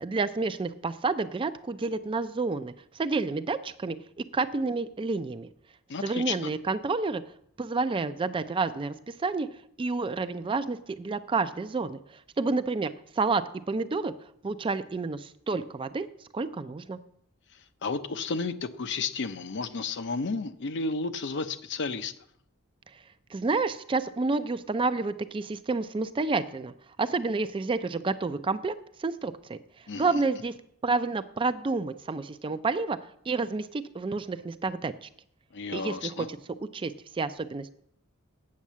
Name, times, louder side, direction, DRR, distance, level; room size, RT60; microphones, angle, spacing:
voice 1, 0.0-5.5 6.0-7.2 7.6-9.5 9.8-12.0 12.4-14.1 14.4-16.1 16.3-17.0 23.3-26.7 27.0-29.6 30.0-30.5 30.8-33.0 33.3-35.1 35.7-36.4 36.7-37.7, right 3 dB, 25° right, 12 dB, 0.4 m, -29 dB
voice 2, 5.9-6.5 17.8-22.1 29.9-30.2 35.5-36.3, left 4 dB, 55° left, 11 dB, 0.6 m, -32 dB
8.5 x 6.6 x 7.3 m, 0.69 s
head